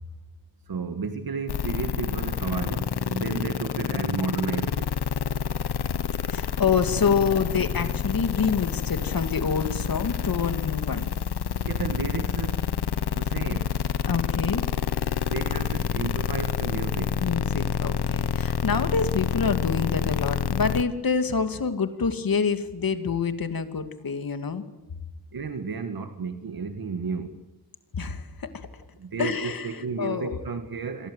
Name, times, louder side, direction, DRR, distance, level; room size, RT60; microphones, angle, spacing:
voice 1, 0.7-4.9 11.6-12.6 13.1-13.7 15.2-17.2 25.3-27.3 29.0-31.1, right 5 dB, 65° right, 8 dB, 1.8 m, -32 dB
sound 1, 1.5-20.8, left 7 dB, 80° left, 1.4 m, -28 dB
voice 2, 6.3-11.1 14.1-14.7 17.2-24.6 27.9-28.7 29.2-30.4, left 5 dB, 60° left, 9 dB, 2.4 m, -27 dB
27.5 x 22.0 x 8.1 m, 1.0 s
wide cardioid pair, 120°, 39 cm